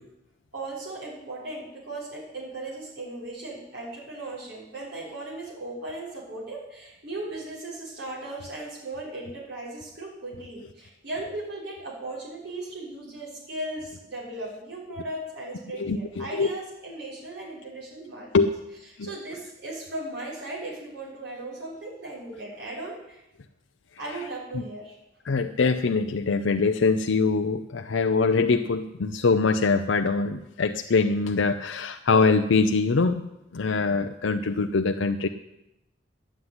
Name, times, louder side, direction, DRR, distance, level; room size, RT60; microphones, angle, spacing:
voice 1, 0.5-18.3 19.0-23.2 24.0-24.9, right 2 dB, 60° right, -6 dB, 6.5 m, -37 dB
voice 2, 15.7-16.5 18.3-18.5 19.0-19.1 24.5-24.6 25.2-35.3, left 4 dB, 90° left, 6 dB, 0.6 m, -23 dB
11.5 x 7.5 x 9.6 m, 0.88 s
head